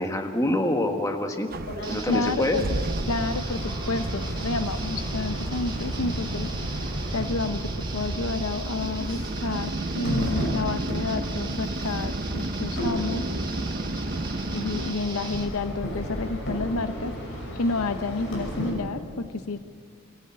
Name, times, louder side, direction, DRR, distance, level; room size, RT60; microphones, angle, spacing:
voice 1, 0.0-1.5 1.9-2.6, left 1 dB, 15° left, 4 dB, 1.4 m, -26 dB
sound 1, 1.5-14.9, right 2 dB, 45° right, 0.8 m, -32 dB
sound 2, 1.6-2.0 3.0-18.7, equal, 60° left, 6.4 m, -35 dB
sound 3, 1.8-15.5, right 3 dB, 20° right, 1.8 m, -39 dB
voice 2, 2.1-2.6 3.1-6.8 7.1-13.3 14.5-17.1 17.6-19.6, left 3 dB, 75° left, 11 dB, 0.7 m, -30 dB
23.5 x 15.0 x 8.6 m, 2.2 s
head